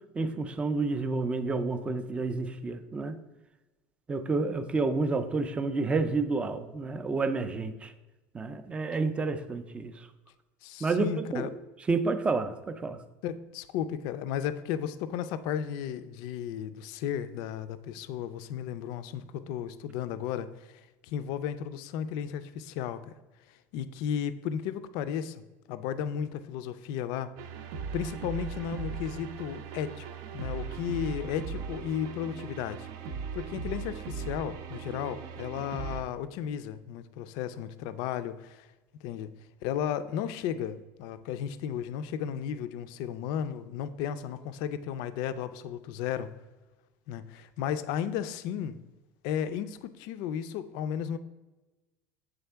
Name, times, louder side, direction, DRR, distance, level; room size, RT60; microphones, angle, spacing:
voice 1, 0.2-3.2 4.1-7.9 8.3-9.9 10.8-11.5 11.9-13.0, right 3 dB, 15° right, 10 dB, 0.3 m, -29 dB
voice 2, 10.6-11.5 13.2-23.1 23.5-25.4 25.7-27.3 27.9-30.1 30.3-32.9 33.3-38.7 39.0-39.3 39.6-46.3 47.1-48.8 49.2-51.2, left 9 dB, 65° left, 12 dB, 0.4 m, -34 dB
sound 1, 27.4-36.0, right 6 dB, 70° right, 0.5 m, -38 dB
8.0 x 3.6 x 3.4 m, 1.1 s
cardioid pair, 140°, 8 cm